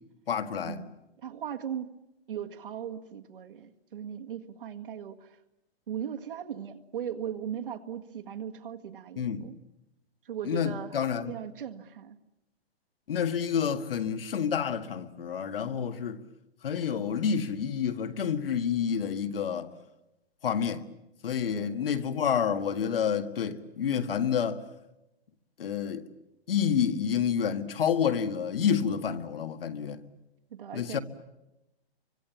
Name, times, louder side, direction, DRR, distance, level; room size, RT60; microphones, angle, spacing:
voice 1, 0.3-0.8 9.2-9.5 10.4-11.4 13.1-16.2 16.6-19.7 20.4-20.9 21.2-24.6 25.6-26.1 26.5-30.0 30.7-31.0, left 7 dB, 60° left, 1.9 m, -29 dB
voice 2, 1.2-2.0 2.3-5.4 5.9-9.6 10.3-11.0 11.3-12.2 21.5-21.9 30.5-31.0, right 9 dB, 55° right, 1.9 m, -38 dB
30.0 x 25.0 x 7.2 m
hypercardioid pair, 180°, 32 cm